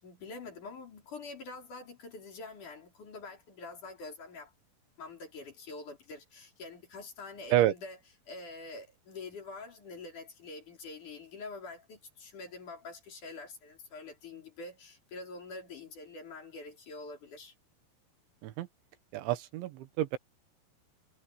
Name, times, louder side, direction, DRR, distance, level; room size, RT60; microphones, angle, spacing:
voice 1, 0.0-4.5 5.0-8.0 8.3-17.5, left 3 dB, 45° left, 5.4 m, -46 dB
voice 2, 19.1-20.2, right 13 dB, 90° right, 3.7 m, -28 dB
omnidirectional pair, 5.2 m